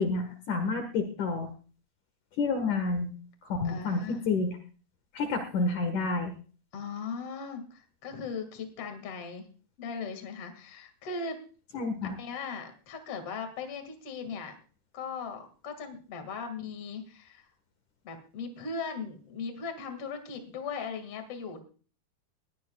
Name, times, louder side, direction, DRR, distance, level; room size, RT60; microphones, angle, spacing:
voice 1, 0.0-1.5 2.4-3.1 3.4-4.6 5.1-6.3 11.7-12.2, left 3 dB, 60° left, 6 dB, 2.9 m, -29 dB
voice 2, 3.6-4.4 6.7-9.5 9.8-11.4 12.2-14.5 14.9-17.5 18.0-21.6, left 5 dB, 45° left, 6 dB, 2.8 m, -38 dB
20.5 x 18.0 x 2.4 m, 0.39 s
omnidirectional pair, 4.2 m